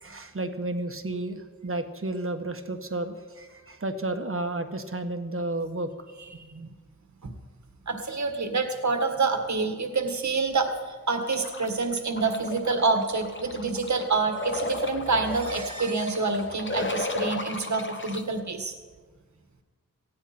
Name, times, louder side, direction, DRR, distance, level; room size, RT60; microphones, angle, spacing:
voice 1, 0.0-6.1, right 2 dB, 40° right, 6 dB, 1.4 m, -32 dB
voice 2, 6.3-6.7 7.2-7.3 7.9-18.7, right 4 dB, 60° right, 4 dB, 1.7 m, -27 dB
sound 1, 11.3-18.2, left 2 dB, 35° left, 1.3 m, -35 dB
19.0 x 15.0 x 4.4 m, 1.4 s
wide cardioid pair, 80°, 33 cm